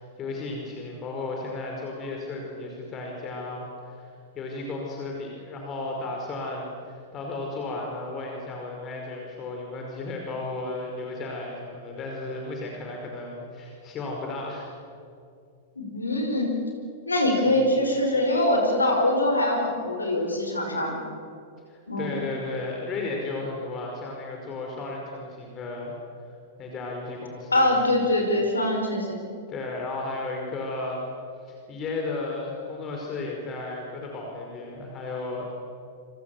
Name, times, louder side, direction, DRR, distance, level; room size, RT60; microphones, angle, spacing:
voice 1, 0.0-14.7 21.7-25.9 26.2-26.3 26.6-27.8 29.5-31.0 31.4-35.5, left 3 dB, 30° left, 0 dB, 5.1 m, -34 dB
voice 2, 15.8-16.5 17.1-20.9 21.9-22.1 27.5-29.2, left 1 dB, 80° left, 2 dB, 4.9 m, -23 dB
29.0 x 26.5 x 7.2 m, 2.5 s
figure-of-eight pair, 95°, 0 cm